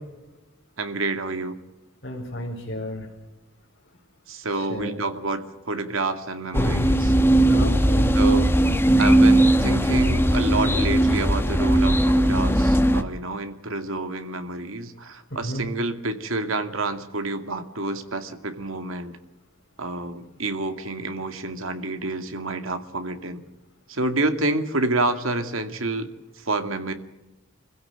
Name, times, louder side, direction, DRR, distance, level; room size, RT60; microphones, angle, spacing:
voice 1, 0.8-1.6 4.3-7.1 8.2-8.5 9.0-19.2 19.8-23.4 23.9-26.1 26.4-26.9, right 2 dB, 85° right, 7 dB, 2.3 m, -28 dB
voice 2, 2.0-3.1 4.5-4.9 6.5-6.9 7.5-8.2 15.3-15.7, equal, 55° left, -2 dB, 4.4 m, -32 dB
sound 1, 6.5-13.0, right 1 dB, 10° left, 1.1 m, -18 dB
26.5 x 16.0 x 9.1 m, 1.0 s
head